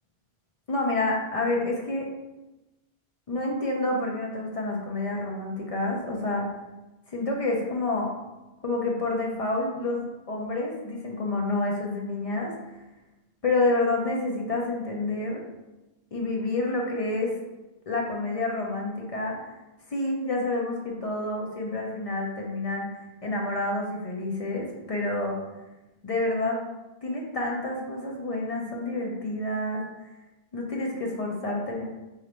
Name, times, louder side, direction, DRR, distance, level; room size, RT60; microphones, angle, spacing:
voice 1, 0.7-2.1 3.3-6.5 7.1-8.1 8.6-12.8 13.4-15.4 16.1-17.4 17.9-19.5 19.9-25.4 26.0-26.6 27.0-29.8 30.5-31.8, left 2 dB, 45° left, -1 dB, 0.5 m, -28 dB
3.0 x 2.4 x 4.3 m, 1.0 s
omnidirectional pair, 1.1 m